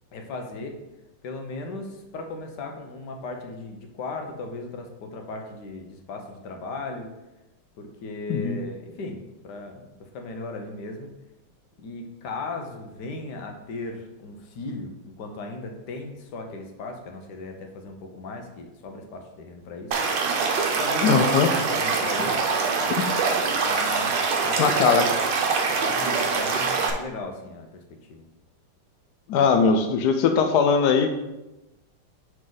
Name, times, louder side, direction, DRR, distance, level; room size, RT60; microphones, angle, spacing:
voice 1, 0.1-0.8 1.2-7.1 7.8-11.1 11.8-20.0 20.8-22.9 23.7-24.9 25.7-27.8 28.1-28.3, left 3 dB, 60° left, 3 dB, 1.3 m, -37 dB
Stream / Liquid, 19.9-26.9, right 4 dB, 65° right, 1.4 m, -24 dB
voice 2, 21.0-21.5 24.6-25.0 29.3-31.1, left 5 dB, 80° left, 6 dB, 0.9 m, -20 dB
5.7 x 5.1 x 3.9 m, 0.98 s
omnidirectional pair, 2.3 m